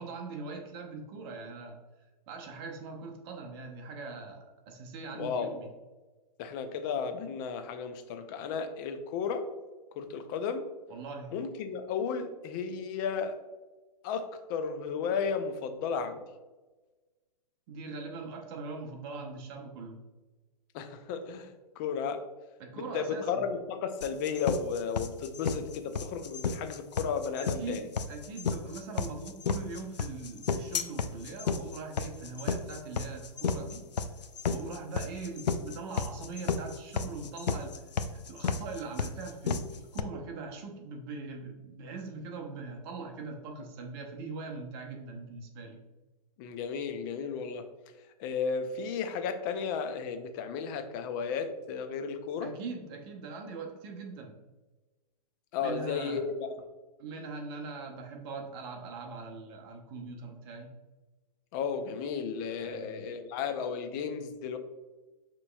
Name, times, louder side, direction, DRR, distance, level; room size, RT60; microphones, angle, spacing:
voice 1, 0.0-1.8 2.3-5.7 10.9-11.3 17.7-20.0 22.6-23.4 27.4-33.8 34.5-37.9 38.1-45.8 52.4-54.4 55.6-56.3 57.0-60.7 62.6-63.1, right 4 dB, 35° right, 2 dB, 0.8 m, -41 dB
voice 2, 5.1-5.5 6.4-9.5 10.0-10.7 11.3-13.4 14.0-16.2 20.7-22.2 22.7-27.9 46.4-47.7 48.2-52.5 55.5-56.6 61.5-64.6, left 6 dB, 30° left, 8 dB, 0.5 m, -34 dB
sound 1, 24.0-40.0, left 5 dB, 85° left, 0.4 m, -32 dB
6.5 x 3.0 x 2.3 m, 1.2 s
hypercardioid pair, 125°, 21 cm